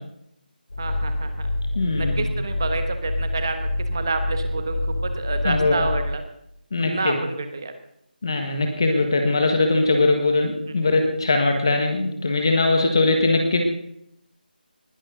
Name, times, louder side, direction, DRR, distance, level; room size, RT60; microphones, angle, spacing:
sound 1, 0.7-6.0, left 1 dB, 85° left, 6.7 m, -27 dB
voice 1, 0.8-1.5 2.0-6.2 6.8-7.7 10.7-10.8, right 3 dB, 25° right, 8 dB, 1.2 m, -29 dB
voice 2, 1.7-2.1 5.4-5.8 6.7-7.1 8.2-13.6, left 3 dB, 30° left, 4 dB, 1.6 m, -21 dB
20.0 x 11.5 x 3.9 m, 0.76 s
figure-of-eight pair, 180°, 5 cm